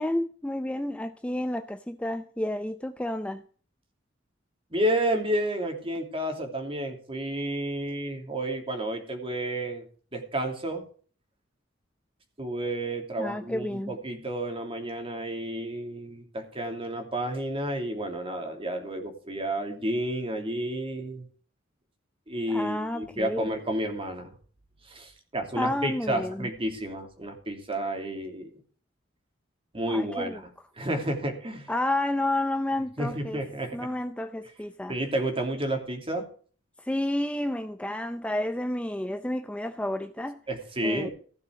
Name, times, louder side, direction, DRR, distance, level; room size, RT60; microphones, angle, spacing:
voice 1, 0.0-3.4 13.2-14.0 22.5-23.5 25.6-26.5 29.9-30.4 31.7-33.4 33.7-35.0 36.8-40.4 40.8-41.1, left 1 dB, 5° left, 0.5 m, -30 dB
voice 2, 4.7-9.8 10.1-10.8 12.4-21.3 22.3-24.3 24.8-28.5 29.7-30.3 30.8-31.7 33.0-33.9 34.9-36.3 40.5-41.1, right 1 dB, 30° right, 3.0 m, -31 dB
16.0 x 6.7 x 6.3 m
head